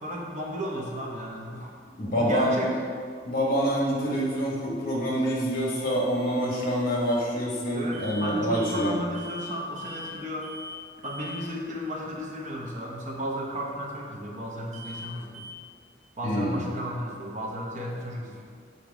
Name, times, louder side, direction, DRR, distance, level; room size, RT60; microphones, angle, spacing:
voice 1, 0.0-1.7 2.1-2.7 7.7-10.6 11.0-15.5 16.2-18.4, equal, 40° right, -1 dB, 0.9 m, -34 dB
voice 2, 2.0-2.5 3.2-9.0 16.2-16.6, equal, 50° left, -3 dB, 1.5 m, -26 dB
sound 1, 5.7-7.3 7.9-8.3 8.5-8.9 9.1-9.5 9.8-10.1 10.4-10.8 11.0-11.4 14.7-15.1 15.3-15.5, left 1 dB, 85° right, 1.1 m, -42 dB
6.4 x 4.2 x 5.0 m, 2.1 s
head